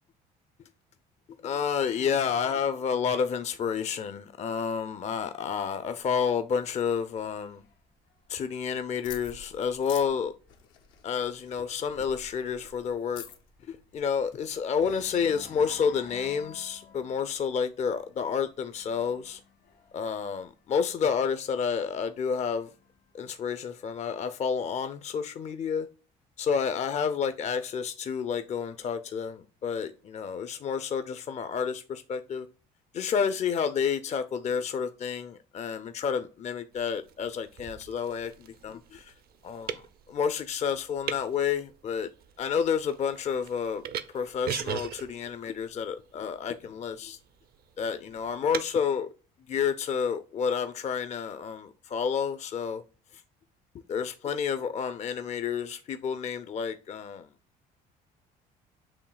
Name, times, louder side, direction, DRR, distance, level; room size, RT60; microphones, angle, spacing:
voice 1, 1.4-7.6 8.3-10.3 11.0-13.2 13.7-19.4 19.9-22.7 23.1-25.9 26.4-32.5 32.9-39.1 39.4-39.8 40.1-42.1 42.4-43.8 44.1-47.2 47.8-49.1 49.5-52.8 53.9-57.3, left 6 dB, 40° left, 0.4 m, -30 dB
sound 1, 6.0-9.6 10.0-10.3 10.6-10.7 11.1-14.4 14.7-21.3 22.1-23.1, left 7 dB, 70° left, 1.4 m, -52 dB
sound 2, 9.0-14.7, left 7 dB, 90° left, 0.8 m, -49 dB
sound 3, 36.7-48.7, right 8 dB, 55° right, 0.5 m, -41 dB
7.0 x 2.7 x 2.3 m
supercardioid pair, 75°, 19 cm